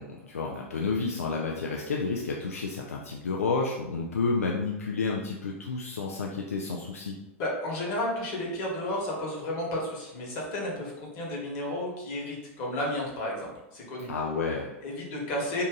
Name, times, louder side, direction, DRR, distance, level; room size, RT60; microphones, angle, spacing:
voice 1, 0.0-7.2 14.1-14.7, left 4 dB, 80° left, -1 dB, 0.4 m, -30 dB
voice 2, 7.4-14.1 14.8-15.6, left 1 dB, 50° left, -3 dB, 1.3 m, -32 dB
2.7 x 2.5 x 3.7 m, 0.97 s
figure-of-eight pair, 90°, 8 cm